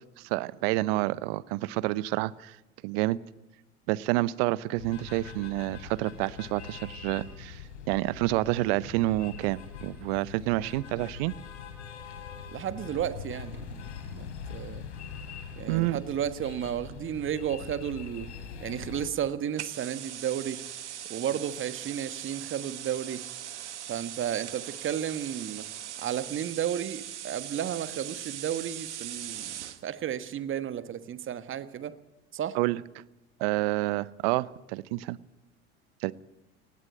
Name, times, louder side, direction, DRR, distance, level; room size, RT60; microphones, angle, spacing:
voice 1, 0.2-2.6 2.8-3.2 3.9-7.6 7.9-11.3 15.7-16.0 32.5-32.8 33.4-35.2 36.0-36.1, right 18 dB, 60° right, 20 dB, 0.8 m, -28 dB
sound 1, 4.7-19.1, left 7 dB, 80° left, 3.3 m, -43 dB
voice 2, 12.5-13.7 14.1-14.8 15.6-18.3 18.6-20.6 21.1-23.2 23.9-25.7 26.0-29.5 29.8-32.0 32.3-32.6, right 10 dB, 35° right, 13 dB, 1.4 m, -33 dB
sound 2, 19.6-29.8, right 11 dB, 80° right, 1.1 m, -40 dB
18.0 x 17.0 x 9.0 m, 0.95 s
hypercardioid pair, 75°, 34 cm